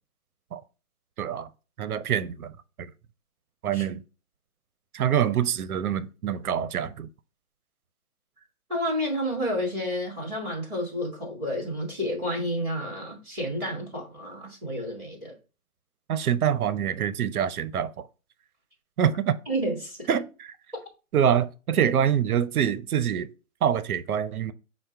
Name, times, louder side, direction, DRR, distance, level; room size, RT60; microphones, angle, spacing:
voice 1, 1.2-1.5 1.8-2.9 3.6-4.0 4.9-7.1 16.1-18.1 19.0-19.4 20.1-20.2 21.1-23.3 23.6-24.5, right 9 dB, 80° right, 0.6 m, -25 dB
voice 2, 8.7-15.3 19.5-20.2, equal, ahead, 0.8 m, -30 dB
5.4 x 2.1 x 4.4 m
hypercardioid pair, 170°, 43 cm